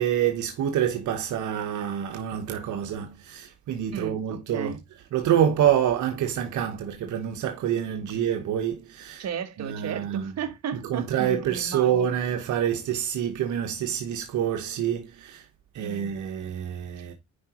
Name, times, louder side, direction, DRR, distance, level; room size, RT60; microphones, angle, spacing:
voice 1, 0.0-4.7 5.1-9.2 9.6-10.3 10.8-15.5 15.7-17.1, right 9 dB, 80° right, 1.2 m, -27 dB
voice 2, 3.9-4.8 9.2-12.2 15.8-16.1 17.0-17.1, right 7 dB, 60° right, 1.4 m, -35 dB
10.0 x 4.9 x 3.0 m
cardioid pair, 90°, 30 cm